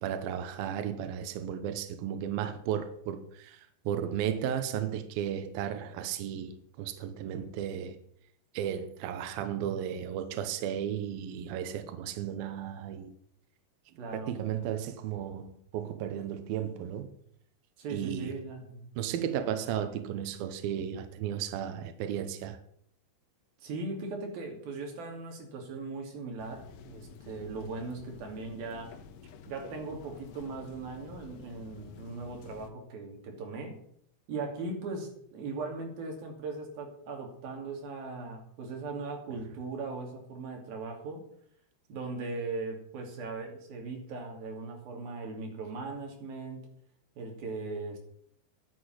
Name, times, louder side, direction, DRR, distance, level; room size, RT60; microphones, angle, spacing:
voice 1, 0.0-8.0 8.5-13.1 14.1-17.2 17.9-18.4 19.0-22.6, right 9 dB, 80° right, 2.1 m, -34 dB
voice 2, 14.0-14.3 17.8-18.9 23.6-28.9 29.5-33.8 34.3-41.2 41.9-46.7 47.2-48.0, right 3 dB, 55° right, 4.1 m, -39 dB
sound 1, 26.4-32.7, left 6 dB, 80° left, 3.5 m, -50 dB
10.5 x 8.4 x 9.6 m
omnidirectional pair, 5.6 m